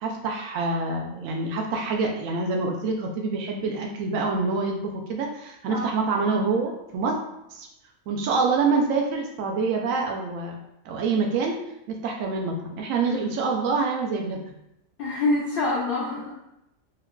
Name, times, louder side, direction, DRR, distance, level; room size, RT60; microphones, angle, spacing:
voice 1, 0.0-7.2 7.5-7.7 8.1-10.6 10.8-11.5 11.9-14.4, right 4 dB, 85° right, 1 dB, 1.0 m, -26 dB
voice 2, 15.0-16.3, left 2 dB, 65° left, -5 dB, 0.5 m, -26 dB
3.6 x 2.3 x 2.2 m, 0.84 s
omnidirectional pair, 1.4 m